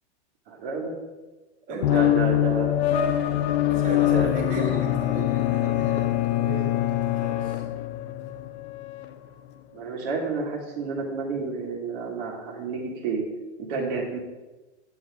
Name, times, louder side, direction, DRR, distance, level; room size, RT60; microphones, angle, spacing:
voice 1, 0.5-0.9 1.7-2.8 3.8-4.3 4.6-4.7 9.7-13.3 13.6-14.2, right 4 dB, 45° right, -2 dB, 2.0 m, -30 dB
sound 1, 1.8-9.1, left 12 dB, 65° left, 1.0 m, -25 dB
voice 2, 3.6-7.7 13.7-13.8, right 2 dB, 20° right, -1 dB, 2.4 m, -37 dB
Bowed string instrument, 4.7-8.5, left 16 dB, 20° left, 0.5 m, -27 dB
10.5 x 8.1 x 3.6 m, 1.1 s
hypercardioid pair, 145°, 35 cm